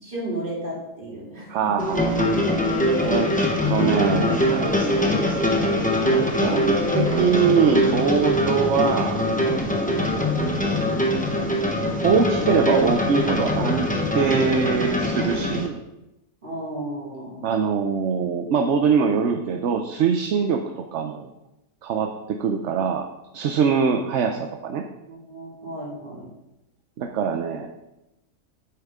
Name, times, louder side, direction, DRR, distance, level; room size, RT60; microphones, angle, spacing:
voice 1, 0.0-2.0 3.0-3.2 9.8-10.1 16.4-17.5 25.0-26.3, right 1 dB, 35° right, -5 dB, 2.8 m, -34 dB
voice 2, 1.5-2.2 3.0-3.3 3.7-5.1 6.1-10.3 12.0-13.9 14.1-15.8 17.4-21.3 21.8-23.0 23.3-24.8 27.0-27.7, right 6 dB, 60° right, 4 dB, 0.9 m, -23 dB
sound 1, 1.8-15.7, left 1 dB, 5° left, 0.8 m, -23 dB
Wind instrument woodwind instrument, 2.0-8.5, left 1 dB, 90° left, 2.4 m, -33 dB
9.5 x 8.7 x 3.6 m, 0.92 s
omnidirectional pair, 1.6 m